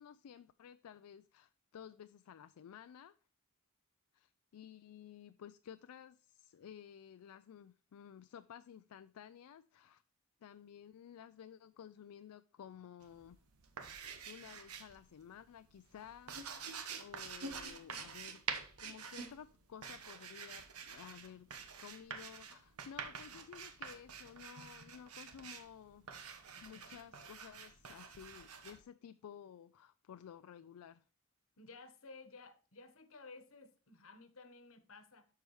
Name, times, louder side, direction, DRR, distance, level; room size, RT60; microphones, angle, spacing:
voice 1, 0.0-3.1 4.1-10.0 10.4-13.4 14.0-16.7 17.0-18.4 18.8-26.1 26.6-31.0, left 8 dB, 80° left, 0.3 m, -54 dB
sound 1, 13.0-15.1 15.3-28.8, right 6 dB, 85° right, 1.1 m, -47 dB
voice 2, 31.6-35.3, left 3 dB, 65° left, 1.1 m, -55 dB
12.5 x 4.8 x 3.1 m
head